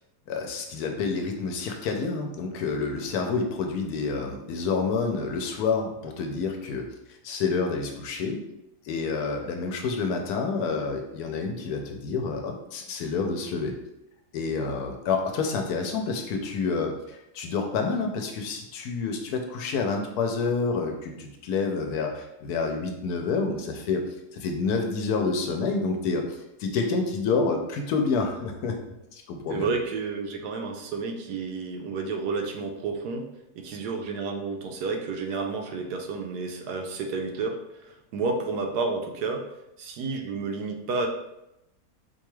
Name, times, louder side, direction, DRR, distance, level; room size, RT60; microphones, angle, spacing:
voice 1, 0.3-6.8 7.2-8.4 8.8-13.8 14.3-24.0 24.3-26.2 26.6-28.8 29.1-29.7, left 4 dB, 80° left, 3 dB, 1.1 m, -28 dB
voice 2, 29.5-33.3 33.6-39.4 39.8-41.1, right 4 dB, 85° right, 4 dB, 1.2 m, -31 dB
4.4 x 2.3 x 3.1 m, 0.87 s
omnidirectional pair, 1.7 m